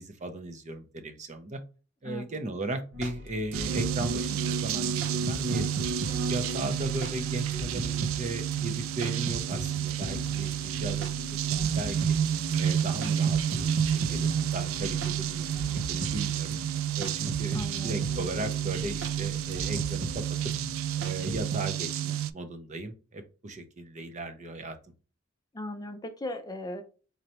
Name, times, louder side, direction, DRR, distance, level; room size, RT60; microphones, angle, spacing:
voice 1, 0.0-1.6 2.0-5.7 6.3-12.0 12.6-16.6 17.0-20.5 21.0-24.8, right 2 dB, 35° right, 8 dB, 0.6 m, -37 dB
sound 1, 2.9-21.6, right 1 dB, 70° right, 0.9 m, -39 dB
sound 2, 3.5-22.3, right 9 dB, 90° right, 0.3 m, -30 dB
voice 2, 17.5-18.2 25.5-26.8, left 1 dB, 20° left, 7 dB, 0.5 m, -38 dB
4.0 x 3.2 x 2.9 m, 0.35 s
head